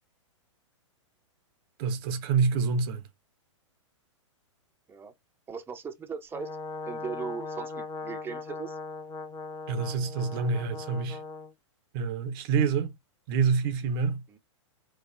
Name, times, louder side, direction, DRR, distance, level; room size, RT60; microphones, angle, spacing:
voice 1, 1.8-3.0 9.7-11.2 11.9-12.9 13.3-14.2, right 5 dB, 45° right, 0.8 m, -27 dB
voice 2, 5.5-6.5 6.9-8.7 14.3-14.4, right 6 dB, 15° right, 0.8 m, -38 dB
Brass instrument, 6.3-11.5, left 3 dB, 20° left, 0.8 m, -39 dB
4.3 x 2.4 x 4.0 m
hypercardioid pair, 115°, 16 cm